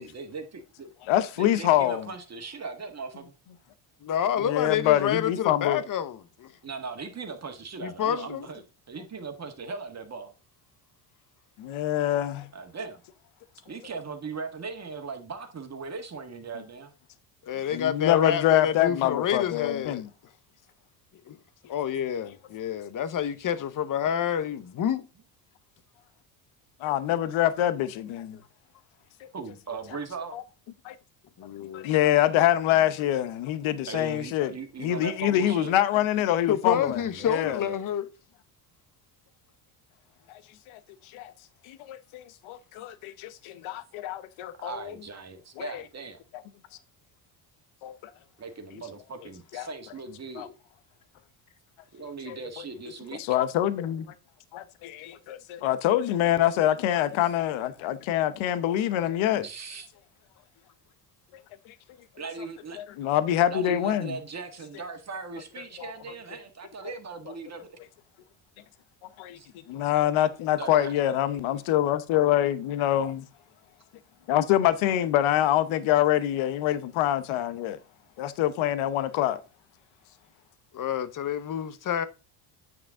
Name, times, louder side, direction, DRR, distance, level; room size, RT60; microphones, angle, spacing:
voice 1, 0.0-0.9 1.4-3.3 6.6-10.3 12.5-13.0 13.6-16.9 29.3-30.4 33.9-35.7 36.6-37.8 44.6-46.2 48.4-50.5 51.9-53.2 55.2-55.3 59.3-59.9 62.2-62.8 63.5-67.8 69.3-69.5 70.5-70.9, right 4 dB, 30° right, 1.7 m, -39 dB
voice 2, 1.1-2.1 4.4-5.8 11.6-12.5 17.7-20.1 26.8-28.4 30.3-30.4 31.7-34.5 34.8-37.6 40.3-40.4 40.7-40.8 41.1-41.3 41.6-44.9 45.6-45.8 47.8-47.9 49.5-49.7 50.4-50.5 52.3-52.4 53.2-54.1 54.5-59.4 62.8-64.1 65.8-65.9 69.2-69.4 69.7-73.3 74.3-77.8 78.2-79.4, left 12 dB, 70° left, 1.0 m, -25 dB
voice 3, 4.0-6.5 7.8-8.5 17.4-20.1 21.3-21.4 21.7-25.1 31.4-31.9 36.5-38.1 80.7-82.1, left 9 dB, 40° left, 0.9 m, -28 dB
8.8 x 6.0 x 3.7 m
cardioid pair, 100°, 49 cm